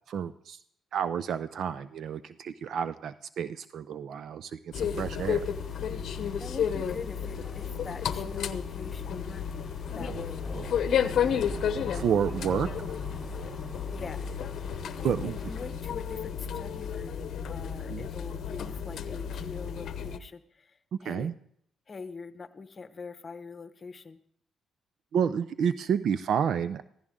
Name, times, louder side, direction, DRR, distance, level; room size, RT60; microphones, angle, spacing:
voice 1, 0.1-0.6 0.9-5.4 11.5-12.9 15.0-15.4 17.9-18.1 21.0-21.3 25.1-26.8, right 8 dB, 65° right, 14 dB, 0.5 m, -30 dB
sound 1, 4.7-20.2, left 8 dB, 65° left, 0.8 m, -32 dB
sound 2, 5.2-15.6, left 2 dB, 15° left, 3.2 m, -55 dB
voice 2, 6.4-9.5 10.0-10.4 13.9-14.2 15.0-21.3 21.9-24.2, left 4 dB, 35° left, 11 dB, 1.0 m, -43 dB
sound 3, 10.0-16.5, right 3 dB, 30° right, 0.8 m, -43 dB
15.0 x 14.5 x 3.7 m, 0.66 s
cardioid pair, 90°, 0 cm